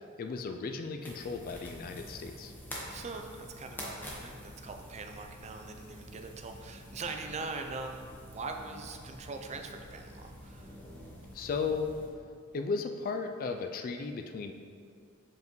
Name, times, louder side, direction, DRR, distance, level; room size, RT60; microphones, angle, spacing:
voice 1, 0.2-2.5 11.3-11.9 12.5-14.5, left 4 dB, 40° left, 5 dB, 0.3 m, -35 dB
sound 1, 1.0-12.1, equal, 10° left, 1.0 m, -47 dB
voice 2, 2.9-10.7, right 3 dB, 30° right, 4 dB, 0.4 m, -42 dB
7.1 x 5.2 x 3.1 m, 2.3 s
head